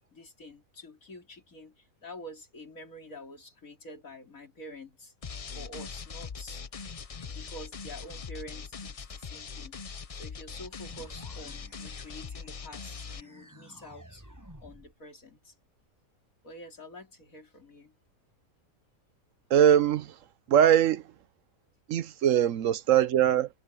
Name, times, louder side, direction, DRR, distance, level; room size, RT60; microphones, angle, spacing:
voice 1, 0.1-5.1 5.5-6.6 7.3-9.8 10.1-14.2 14.6-15.5 16.4-17.9, left 1 dB, 60° left, 4.2 m, -47 dB
sound 1, 5.2-13.2, left 5 dB, 45° left, 0.5 m, -41 dB
sound 2, 10.8-15.0, equal, 10° right, 5.4 m, -53 dB
voice 2, 19.5-20.1 20.5-21.0 21.9-23.5, right 10 dB, 65° right, 1.0 m, -21 dB
omnidirectional pair, 1.6 m